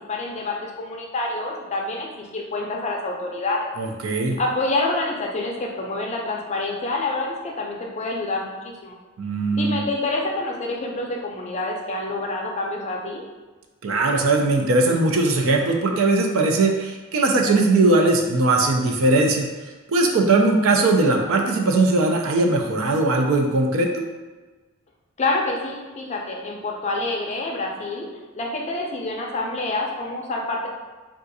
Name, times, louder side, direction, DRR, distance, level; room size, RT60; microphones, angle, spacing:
voice 1, 0.1-3.7 4.4-8.9 9.5-13.2 25.2-28.1 28.3-30.7, left 2 dB, 30° left, -1 dB, 0.4 m, -27 dB
voice 2, 3.8-4.4 9.2-9.8 13.8-19.5 19.9-24.0, right 2 dB, 70° right, 2 dB, 0.4 m, -19 dB
3.6 x 2.4 x 2.6 m, 1.3 s
head